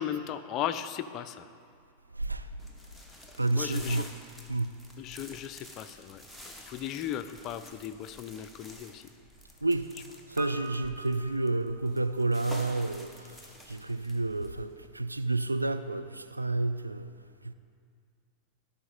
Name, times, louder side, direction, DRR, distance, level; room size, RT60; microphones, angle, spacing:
voice 1, 0.0-1.5 3.5-4.1 5.0-6.2 6.7-9.1, left 10 dB, 35° left, 12 dB, 0.4 m, -36 dB
voice 2, 2.1-2.5 3.4-4.1 4.5-4.8 9.6-13.4 13.7-17.1 17.4-17.5, right 2 dB, 85° right, 10 dB, 0.3 m, -30 dB
sound 1, 2.6-14.9, left 1 dB, ahead, 1.0 m, -50 dB
Piano, 10.4-12.4 12.7-12.8, right 3 dB, 35° right, 1.0 m, -45 dB
13.0 x 5.6 x 4.2 m, 2.2 s
figure-of-eight pair, 90°, 0 cm